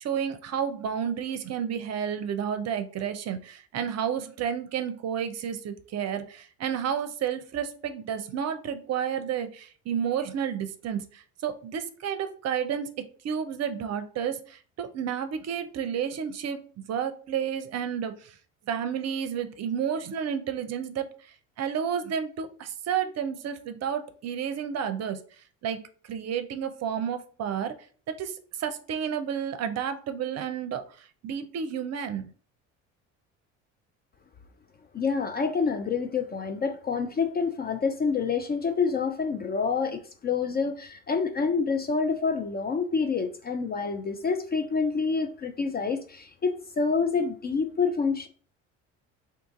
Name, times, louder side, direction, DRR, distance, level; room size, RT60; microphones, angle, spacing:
voice 1, 0.0-12.9 13.2-18.4 18.7-21.1 21.6-25.2 25.6-27.7 28.1-32.3, right 8 dB, 40° right, 9 dB, 0.6 m, -31 dB
voice 2, 34.9-48.3, left 5 dB, 25° left, 7 dB, 0.4 m, -27 dB
2.7 x 2.5 x 3.7 m, 0.43 s
hypercardioid pair, 65°, 39 cm